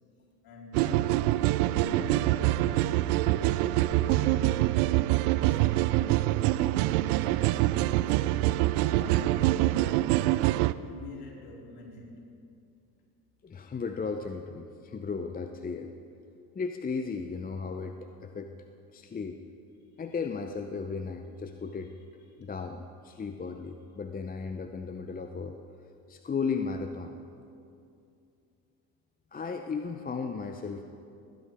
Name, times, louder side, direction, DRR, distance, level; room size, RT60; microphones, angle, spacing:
voice 1, 0.4-4.8 5.3-7.6 8.0-8.6 8.9-10.5 10.9-12.2 22.3-22.4, left 3 dB, 50° left, -3 dB, 4.1 m, -46 dB
sound 1, 0.7-10.7, right 16 dB, 75° right, 0.6 m, -25 dB
voice 2, 13.4-15.9 16.5-18.5 18.9-19.4 20.0-21.9 22.4-25.6 26.1-27.2 29.3-30.8, left 5 dB, 20° left, 6 dB, 0.7 m, -35 dB
19.5 x 10.0 x 5.0 m, 2.5 s
hypercardioid pair, 70°, 46 cm